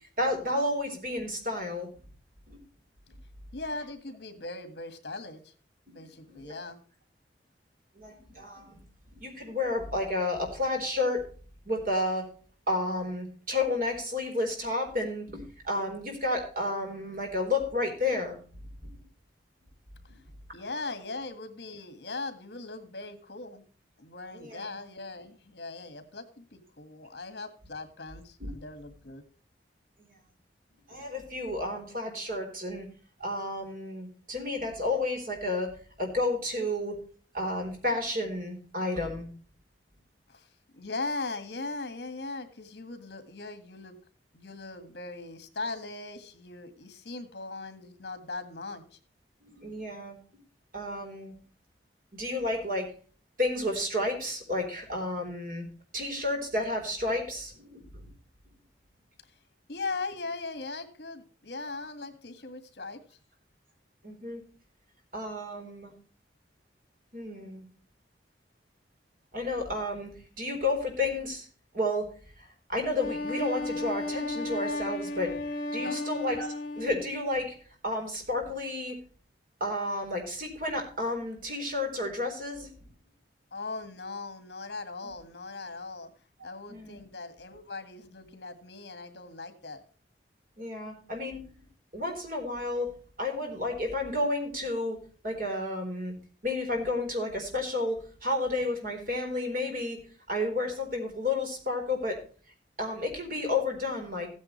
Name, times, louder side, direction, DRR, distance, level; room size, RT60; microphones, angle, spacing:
voice 1, 0.2-1.9 2.5-2.6 5.9-6.5 8.0-8.8 9.2-11.2 11.7-12.3 12.7-18.4 18.8-19.0 24.3-24.7 28.4-28.5 30.0-30.1 30.9-32.9 33.2-37.0 37.3-39.3 49.4-50.2 50.7-51.3 52.1-52.9 53.4-55.6 55.9-58.1 64.0-64.4 65.1-65.9 67.1-67.6 69.3-70.1 70.4-71.5 71.7-72.1 72.7-75.4 75.7-77.5 77.8-79.0 79.6-82.7 86.7-87.0 90.6-91.4 91.9-92.9 93.2-95.0 95.2-96.1 96.4-100.0 100.3-102.2 102.8-104.3, left 2 dB, 50° right, 2 dB, 4.1 m, -31 dB
voice 2, 3.5-5.5 5.9-6.8 20.0-20.1 20.5-23.6 24.0-29.2 40.3-44.0 44.3-49.0 59.7-63.2 75.7-76.1 83.5-86.1 86.4-89.8, left 3 dB, 65° left, 9 dB, 1.8 m, -39 dB
Wind instrument woodwind instrument, 73.0-77.3, left 2 dB, 50° left, 2.3 m, -34 dB
15.0 x 9.6 x 3.2 m, 0.41 s
head